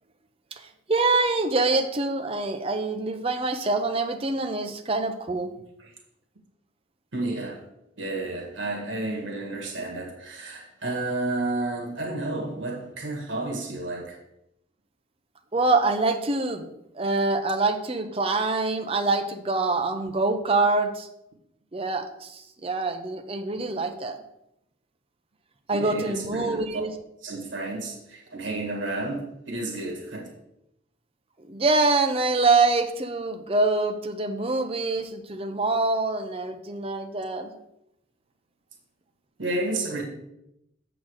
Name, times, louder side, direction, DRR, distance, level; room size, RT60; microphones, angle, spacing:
voice 1, 0.9-5.5 15.5-21.1 21.7-24.2 25.7-26.9 31.5-37.5, right 3 dB, 30° right, 0.6 m, -25 dB
voice 2, 7.1-7.6 8.0-14.2 25.7-26.8 27.2-30.3 39.4-40.0, right 2 dB, 85° right, 1.7 m, -31 dB
7.4 x 4.0 x 6.4 m
head